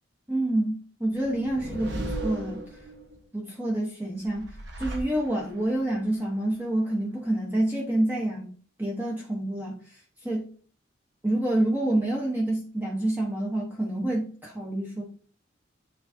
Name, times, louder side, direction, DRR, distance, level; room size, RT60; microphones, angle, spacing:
voice 1, 0.3-2.6 3.3-4.5 4.8-8.5 8.8-10.4 11.2-15.0, right 1 dB, 10° right, -2 dB, 1.0 m, -28 dB
sound 1, 1.2-3.2 4.2-5.7, right 1 dB, 60° right, 1.3 m, -36 dB
9.5 x 3.9 x 2.7 m, 0.44 s
head